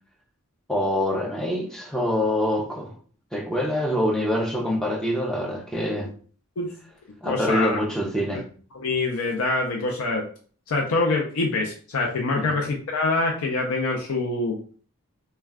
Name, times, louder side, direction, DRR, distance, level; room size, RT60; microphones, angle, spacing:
voice 1, 0.7-2.9 3.3-6.1 7.2-8.5 12.4-12.5, left 1 dB, 5° left, 0.4 m, -25 dB
voice 2, 7.2-7.8 8.7-10.2 10.7-14.6, left 3 dB, 75° left, 0.5 m, -25 dB
2.3 x 2.2 x 3.3 m
head